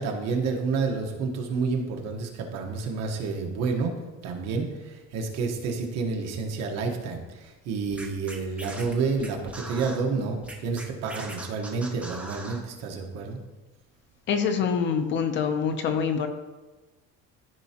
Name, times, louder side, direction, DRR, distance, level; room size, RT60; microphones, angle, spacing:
voice 1, 0.0-3.9 4.2-13.4, right 4 dB, 60° right, 2 dB, 1.3 m, -29 dB
Scratching (performance technique), 7.9-10.0 10.4-12.6, right 2 dB, 5° right, 0.7 m, -40 dB
voice 2, 14.3-16.3, left 6 dB, 40° left, 7 dB, 0.6 m, -25 dB
14.0 x 4.8 x 2.9 m, 1.2 s
cardioid pair, 175°, 29 cm